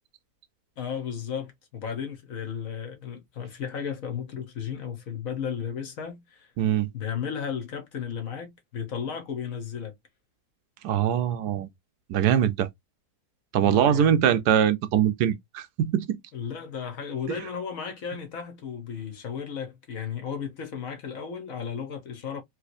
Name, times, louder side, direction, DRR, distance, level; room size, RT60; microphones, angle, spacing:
voice 1, 0.8-6.5 6.9-9.9 13.6-14.2 16.3-22.4, left 7 dB, 60° left, 1.3 m, -34 dB
voice 2, 6.6-6.9 10.8-11.7 12.1-12.7 13.5-16.2, right 9 dB, 80° right, 1.1 m, -22 dB
3.3 x 3.0 x 2.5 m
omnidirectional pair, 1.7 m